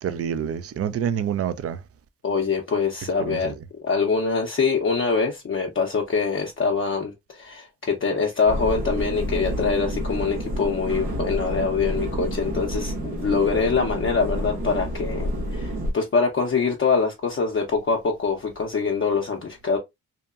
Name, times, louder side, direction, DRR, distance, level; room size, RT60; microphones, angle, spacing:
voice 1, 0.0-1.8 3.2-3.5, right 8 dB, 40° right, 0.4 m, -27 dB
voice 2, 2.2-3.5 3.8-19.8, left 5 dB, 35° left, 0.6 m, -24 dB
sound 1, 8.5-15.9, right 1 dB, 90° right, 1.0 m, -29 dB
2.8 x 2.2 x 2.3 m
cardioid pair, 60°, 36 cm